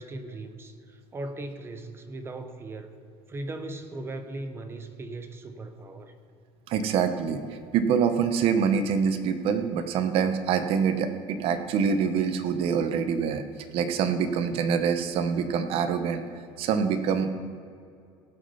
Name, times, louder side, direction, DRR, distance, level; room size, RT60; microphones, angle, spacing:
voice 1, 0.0-2.9 3.3-6.1, right 2 dB, 20° right, 9 dB, 0.8 m, -38 dB
voice 2, 6.7-7.4 7.7-13.4 13.7-16.2 16.6-17.3, right 6 dB, 55° right, 9 dB, 0.9 m, -25 dB
18.0 x 6.4 x 5.6 m, 2.4 s
cardioid pair, 145°, 12 cm